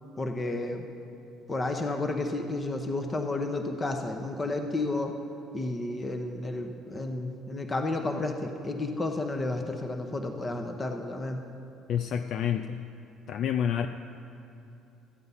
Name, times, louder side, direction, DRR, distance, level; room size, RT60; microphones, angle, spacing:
voice 1, 0.2-0.8 1.5-5.1 5.5-11.4, left 2 dB, 30° left, 4 dB, 0.9 m, -31 dB
voice 2, 11.9-12.8 13.3-13.9, left 9 dB, 60° left, 8 dB, 0.4 m, -28 dB
13.5 x 7.9 x 5.6 m, 2.9 s
supercardioid pair, 85°, 0 cm